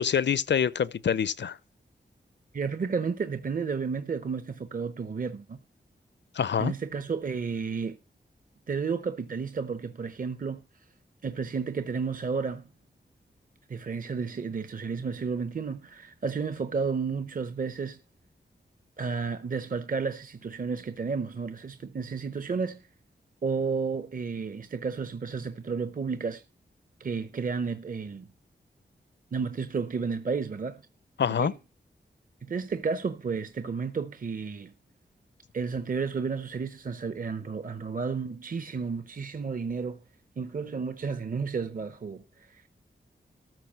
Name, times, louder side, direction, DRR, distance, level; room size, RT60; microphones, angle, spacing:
voice 1, 0.0-1.6 6.3-6.7 31.2-31.5, left 7 dB, 80° left, 0.6 m, -26 dB
voice 2, 2.5-5.6 6.6-8.0 8.7-10.6 11.2-12.7 13.7-18.0 19.0-22.8 23.4-26.4 27.0-28.3 29.3-30.8 31.3-31.5 32.4-34.7 35.5-40.0 40.4-42.7, right 5 dB, 50° right, 0.8 m, -32 dB
14.0 x 5.1 x 7.4 m
wide cardioid pair, 115°, 18 cm